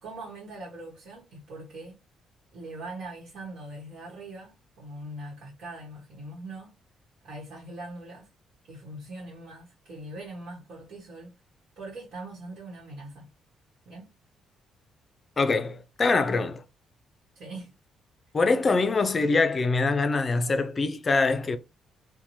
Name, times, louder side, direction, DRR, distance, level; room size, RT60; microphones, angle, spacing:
voice 1, 0.0-2.0 2.5-6.8 7.2-8.3 8.7-11.3 11.8-13.3 13.8-14.1 17.3-17.7, right 2 dB, 70° right, 1.1 m, -41 dB
voice 2, 15.4-16.6 18.3-21.6, left 3 dB, 35° left, 0.4 m, -24 dB
2.9 x 2.2 x 2.6 m
cardioid pair, 90°, 0 cm